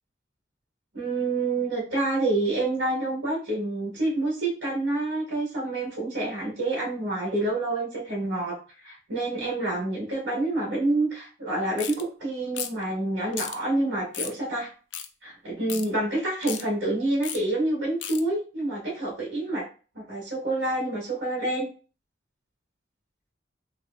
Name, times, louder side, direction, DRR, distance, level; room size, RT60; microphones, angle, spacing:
voice 1, 0.9-8.5 8.8-14.7 15.2-19.6 19.9-21.7, right 2 dB, 75° right, -6 dB, 1.7 m, -28 dB
sound 1, 11.8-12.0 12.5-12.8 13.3-13.6 14.1-14.4 14.9-15.1 15.7-15.9 16.4-16.6 17.2-17.4 18.0-18.2, left 9 dB, 80° left, 0.4 m, -34 dB
3.3 x 3.0 x 2.5 m, 0.37 s
head